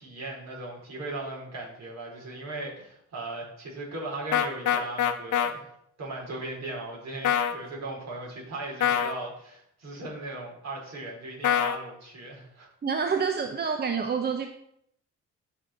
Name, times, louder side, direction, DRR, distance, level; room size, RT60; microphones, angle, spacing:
voice 1, 0.0-5.7 6.0-12.7, right 2 dB, 60° right, -3 dB, 4.5 m, -38 dB
sound 1, 4.3-5.5 7.2-7.6 8.8-9.1 11.4-11.8, left 9 dB, 80° left, 1.0 m, -24 dB
voice 2, 12.8-14.5, right 6 dB, 35° right, 6 dB, 0.9 m, -27 dB
13.5 x 5.4 x 4.4 m, 0.73 s
cardioid pair, 90°, 30 cm